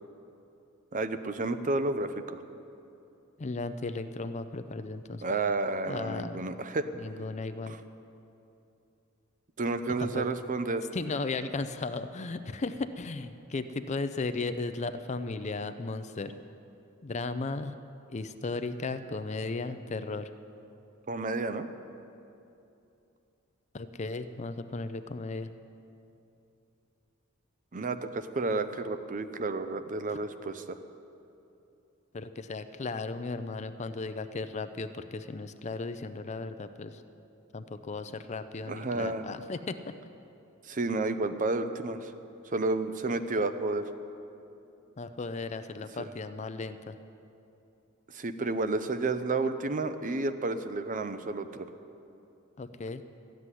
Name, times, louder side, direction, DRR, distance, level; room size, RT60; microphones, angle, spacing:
voice 1, 0.9-2.4 5.2-6.9 7.7-7.8 9.6-10.9 21.1-21.7 27.7-30.8 38.7-39.3 40.6-42.1 42.5-43.8 46.0-46.1 48.1-51.7, right 3 dB, 40° right, 10 dB, 0.6 m, -31 dB
voice 2, 3.4-5.2 5.9-6.5 6.9-7.8 10.0-10.3 10.9-16.3 17.0-17.8 18.1-20.3 23.7-25.5 30.1-30.2 32.1-37.0 37.5-39.9 45.0-47.0 52.6-53.0, left 3 dB, 35° left, 11 dB, 0.5 m, -35 dB
13.5 x 7.8 x 9.8 m, 2.8 s
head